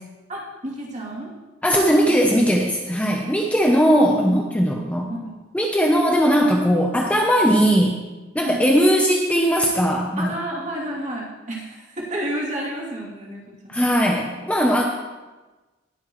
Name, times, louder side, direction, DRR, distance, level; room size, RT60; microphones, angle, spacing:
voice 1, 0.3-1.3 2.1-2.3 3.8-4.1 5.0-5.3 8.4-8.8 10.2-13.4, right 1 dB, 35° right, -5 dB, 3.0 m, -30 dB
voice 2, 1.6-5.1 5.5-8.0 8.3-10.3 13.7-14.8, equal, 5° left, 0 dB, 0.7 m, -19 dB
20.0 x 7.8 x 3.2 m, 1.2 s
head